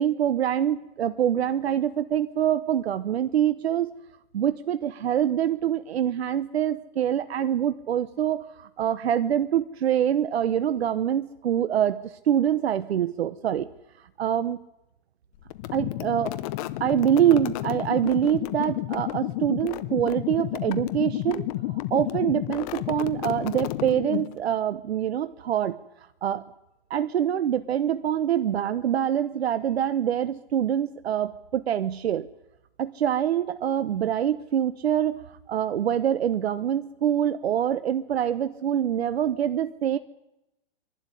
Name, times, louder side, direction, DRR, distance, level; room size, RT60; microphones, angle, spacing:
voice 1, 0.0-3.9 4.3-13.7 14.2-14.6 15.7-16.3 16.8-26.4 26.9-32.3 32.8-40.0, right 10 dB, 90° right, 12 dB, 0.9 m, -25 dB
sound 1, 15.5-24.5, left 16 dB, 35° left, 0.9 m, -31 dB
24.0 x 12.0 x 9.9 m, 0.90 s
hypercardioid pair, 150°, 31 cm